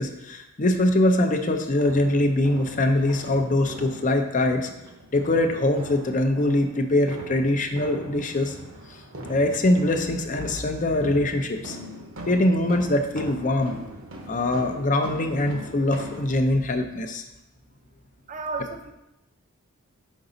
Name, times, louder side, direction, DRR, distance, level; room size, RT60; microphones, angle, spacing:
voice 1, 0.0-4.7 5.1-8.5 9.3-11.8 12.3-13.7 14.3-17.2, left 1 dB, 35° left, 6 dB, 0.6 m, -23 dB
sound 1, 1.3-16.3, right 1 dB, 60° right, 0.9 m, -41 dB
voice 2, 18.3-18.9, right 3 dB, 35° right, 4 dB, 0.6 m, -32 dB
5.9 x 5.3 x 3.9 m, 0.91 s
head